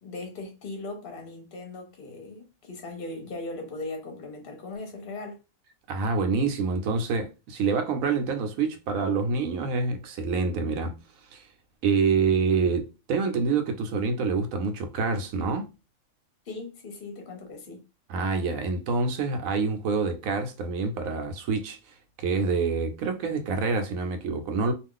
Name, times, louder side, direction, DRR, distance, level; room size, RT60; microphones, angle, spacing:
voice 1, 0.0-5.4 16.5-17.9, left 2 dB, 50° left, 0.8 m, -38 dB
voice 2, 5.9-11.0 11.3-11.5 11.8-15.7 18.1-24.7, right 4 dB, 80° right, 1.0 m, -27 dB
2.4 x 2.3 x 3.6 m
omnidirectional pair, 1.4 m